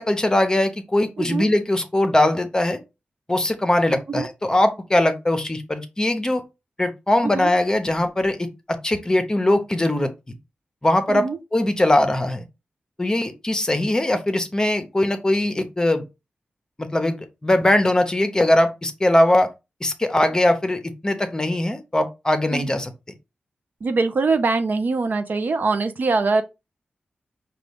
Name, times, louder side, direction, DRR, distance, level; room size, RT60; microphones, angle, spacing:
voice 1, 0.0-2.8 3.3-6.4 6.8-10.3 10.8-12.5 13.0-16.0 16.8-17.2 17.4-19.5 19.8-22.9, left 1 dB, 20° left, 0.7 m, -21 dB
voice 2, 1.2-1.5 4.1-4.3 7.2-7.5 11.1-11.4 22.5-22.7 23.8-26.4, right 3 dB, 65° right, 0.6 m, -23 dB
5.0 x 2.3 x 3.4 m
wide cardioid pair, 70°, 3 cm